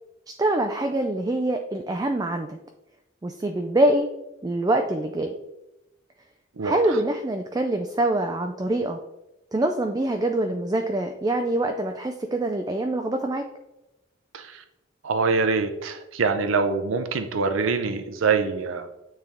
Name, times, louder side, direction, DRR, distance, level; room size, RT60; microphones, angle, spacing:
voice 1, 0.3-2.6 3.2-4.1 4.4-5.3 6.6-9.0 9.5-13.4, right 1 dB, 20° right, 5 dB, 0.3 m, -25 dB
voice 2, 15.0-18.9, right 4 dB, 80° right, 8 dB, 0.5 m, -24 dB
8.9 x 3.4 x 3.5 m, 0.95 s
head